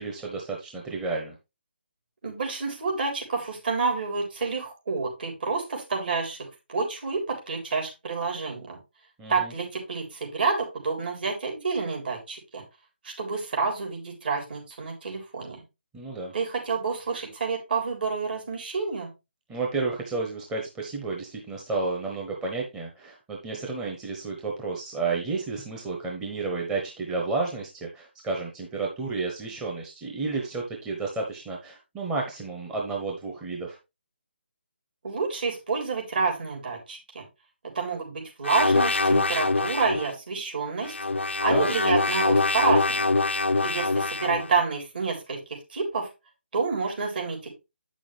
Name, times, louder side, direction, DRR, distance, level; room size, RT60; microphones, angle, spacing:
voice 1, 0.0-1.3 9.2-9.5 15.9-16.3 19.5-33.8 41.5-41.7, right 3 dB, 10° right, -1 dB, 1.0 m, -31 dB
voice 2, 2.2-6.4 6.7-8.8 9.3-12.6 13.0-15.6 16.3-19.1 35.0-37.2 37.7-40.9 41.4-43.1 43.6-45.4 45.7-46.1 46.5-47.5, right 4 dB, 55° right, 1 dB, 3.9 m, -28 dB
sound 1, 38.4-40.1 40.8-44.5, left 3 dB, 90° left, 0.5 m, -24 dB
8.6 x 6.2 x 3.3 m, 0.25 s
figure-of-eight pair, 155°, 6 cm